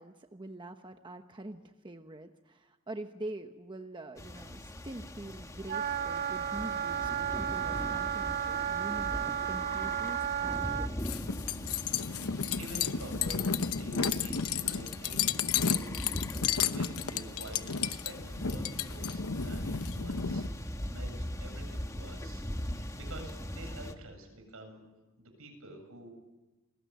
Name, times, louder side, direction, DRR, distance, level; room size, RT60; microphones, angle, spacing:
voice 1, 0.0-11.0, right 1 dB, 20° right, 6 dB, 1.1 m, -45 dB
sound 1, 4.2-23.9, equal, 15° left, 1.3 m, -40 dB
Wind instrument woodwind instrument, 5.7-10.9, right 9 dB, 50° right, 1.3 m, -33 dB
sound 2, 11.0-20.5, left 7 dB, 85° left, 1.0 m, -32 dB
voice 2, 12.6-13.5 13.8-19.6 19.9-24.8 25.2-26.1, right 2 dB, 75° right, 5 dB, 7.8 m, -48 dB
29.0 x 21.5 x 9.4 m, 1.1 s
head